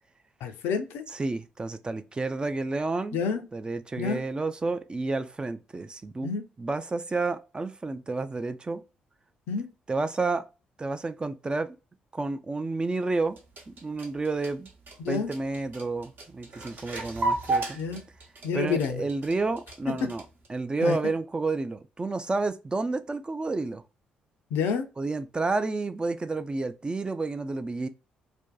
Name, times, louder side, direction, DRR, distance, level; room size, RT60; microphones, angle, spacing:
voice 1, 0.4-1.1 3.1-3.4 4.0-4.2 6.2-6.4 9.5-9.7 15.0-15.3 17.8-18.0 18.4-19.0 20.8-21.0 24.5-24.9, left 6 dB, 60° left, 0.4 m, -28 dB
voice 2, 1.1-3.2 3.5-6.3 6.6-8.8 9.9-10.5 10.8-11.8 12.1-13.4 13.7-14.7 15.1-17.8 18.5-20.2 20.5-23.8 25.0-27.9, right 3 dB, 20° right, 0.3 m, -30 dB
sound 1, 13.2-20.5, right 2 dB, 45° right, 0.7 m, -33 dB
2.5 x 2.1 x 2.2 m
figure-of-eight pair, 40°, 4 cm